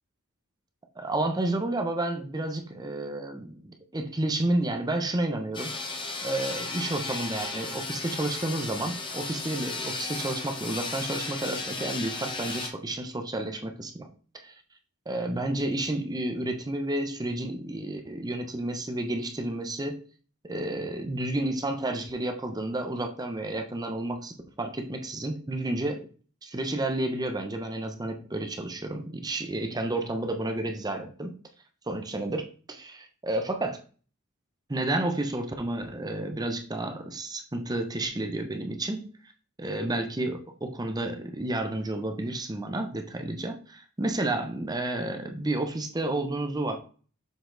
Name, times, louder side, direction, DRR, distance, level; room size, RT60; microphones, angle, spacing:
voice 1, 1.0-5.7 6.2-14.1 14.4-14.6 15.1-20.0 20.4-26.1 26.4-31.3 31.9-33.8 34.7-39.1 39.6-46.8, right 1 dB, 20° right, 5 dB, 0.7 m, -31 dB
sound 1, 5.5-12.7, left 3 dB, 20° left, 0.9 m, -35 dB
7.0 x 4.2 x 3.8 m, 0.39 s
head